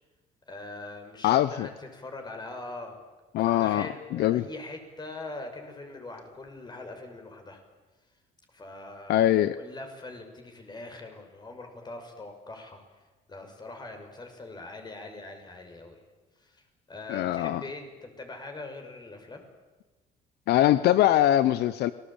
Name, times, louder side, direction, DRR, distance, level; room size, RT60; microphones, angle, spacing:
voice 1, 0.5-3.0 3.4-7.6 8.5-9.3 9.6-12.8 13.3-16.0 16.4-19.4, left 2 dB, 25° left, 5 dB, 6.2 m, -42 dB
voice 2, 1.2-1.7 3.3-4.4 9.1-9.6 17.1-17.6 20.5-21.9, left 13 dB, 75° left, 15 dB, 0.8 m, -22 dB
29.0 x 20.5 x 8.9 m, 1.2 s
cardioid pair, 110°, 17 cm